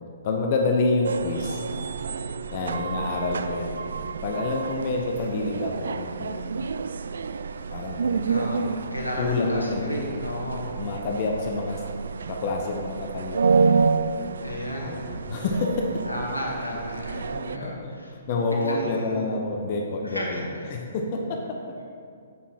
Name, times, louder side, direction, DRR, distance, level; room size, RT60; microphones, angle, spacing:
voice 1, 0.2-1.6 2.5-6.7 7.7-8.2 9.2-9.9 10.8-11.8 12.3-13.6 14.8-16.0 17.2-21.8, left 3 dB, 40° left, 1 dB, 0.9 m, -28 dB
sound 1, 1.0-17.6, right 5 dB, 60° right, 0.3 m, -29 dB
voice 2, 8.3-10.7 14.4-14.9 16.0-18.1 18.6-19.2 20.0-20.4, left 1 dB, 85° left, -1 dB, 1.2 m, -33 dB
8.4 x 7.0 x 4.5 m, 2.3 s
figure-of-eight pair, 125°, 0 cm